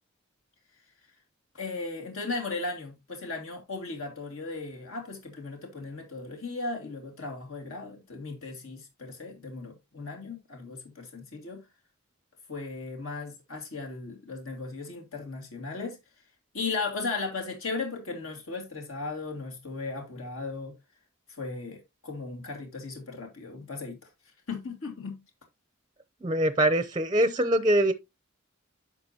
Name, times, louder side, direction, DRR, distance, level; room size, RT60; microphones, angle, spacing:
voice 1, 1.5-11.6 12.5-16.0 16.5-20.7 21.4-24.0 24.5-25.1, left 3 dB, 70° left, 2.2 m, -36 dB
voice 2, 26.2-27.9, right 1 dB, 20° right, 0.6 m, -23 dB
10.5 x 5.9 x 2.8 m
head